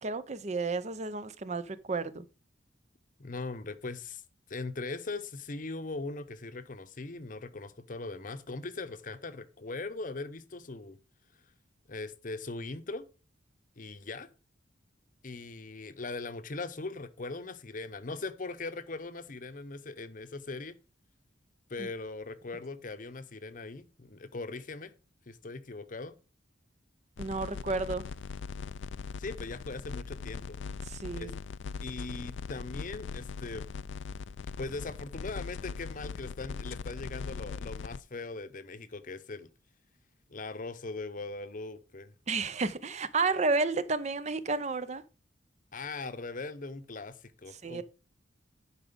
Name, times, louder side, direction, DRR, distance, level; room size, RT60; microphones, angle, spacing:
voice 1, 0.0-2.2 21.8-21.9 27.2-28.1 30.8-31.3 42.3-45.0 47.6-47.8, right 3 dB, 35° right, 0.6 m, -31 dB
voice 2, 3.2-4.2 4.5-11.0 11.9-13.0 13.8-14.3 15.2-20.8 21.7-24.9 25.3-26.1 29.2-30.6 31.1-31.3 31.8-33.6 34.6-39.5 40.3-42.1 45.7-47.8, left 3 dB, 45° left, 0.8 m, -40 dB
sound 1, 27.2-38.0, left 5 dB, 70° left, 0.4 m, -40 dB
11.0 x 4.9 x 5.1 m
head